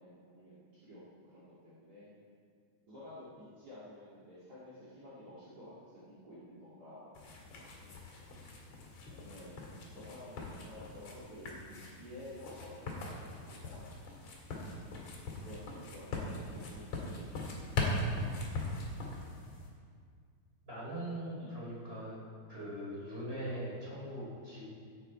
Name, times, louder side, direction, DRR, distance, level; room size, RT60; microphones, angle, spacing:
voice 1, 0.0-2.1 2.9-7.2 7.5-8.3 9.1-9.6 9.9-13.9 14.2-14.3 15.4-17.4 18.2-18.8 21.4-21.6 22.5-22.8, left 1 dB, 35° right, -10 dB, 1.6 m, -52 dB
sound 1, 7.1-19.7, left 2 dB, 50° left, 2.6 m, -40 dB
voice 2, 20.6-22.2 22.5-24.6, right 1 dB, 15° right, -6 dB, 3.4 m, -41 dB
16.0 x 8.9 x 4.5 m, 2.1 s
omnidirectional pair, 5.1 m